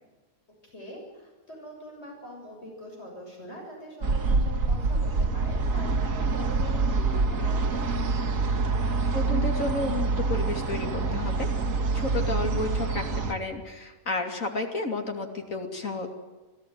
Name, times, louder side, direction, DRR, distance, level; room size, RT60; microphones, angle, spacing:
voice 1, 0.6-7.7, equal, 50° left, -1 dB, 7.6 m, -43 dB
sound 1, 4.0-13.3, right 3 dB, 65° right, 2.5 m, -26 dB
voice 2, 9.1-11.5 11.9-13.0 13.3-16.1, left 2 dB, 65° left, 4 dB, 3.2 m, -31 dB
27.5 x 16.5 x 9.4 m, 1.3 s
omnidirectional pair, 1.5 m